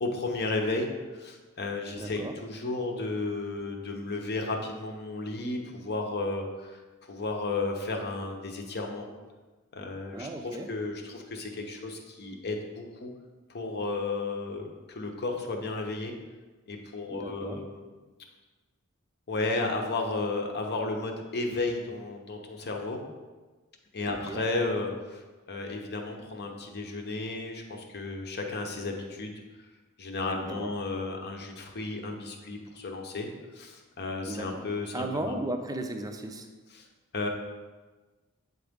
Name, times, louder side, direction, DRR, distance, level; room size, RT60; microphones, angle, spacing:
voice 1, 0.0-9.1 9.7-13.1 13.5-16.1 16.7-17.8 19.3-23.0 23.9-29.4 30.0-35.4 36.7-36.9 37.1-37.3, left 3 dB, 50° left, 3 dB, 0.8 m, -33 dB
voice 2, 1.9-2.3 10.1-10.7 17.1-17.6 24.1-24.4 30.3-30.7 34.2-34.7 34.9-36.5, right 1 dB, 15° right, 5 dB, 0.5 m, -36 dB
8.1 x 3.9 x 3.6 m, 1.3 s
head